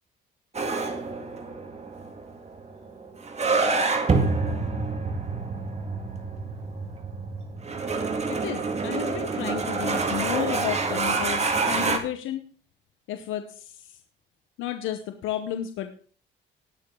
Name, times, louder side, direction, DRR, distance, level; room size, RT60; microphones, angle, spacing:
sound 1, 0.5-12.0, right 3 dB, 35° right, 2.2 m, -27 dB
voice 1, 8.3-12.4 13.1-14.0 14.6-15.9, left 11 dB, 90° left, 8 dB, 1.0 m, -32 dB
19.0 x 6.7 x 3.9 m, 0.43 s
cardioid pair, 90°, 20 cm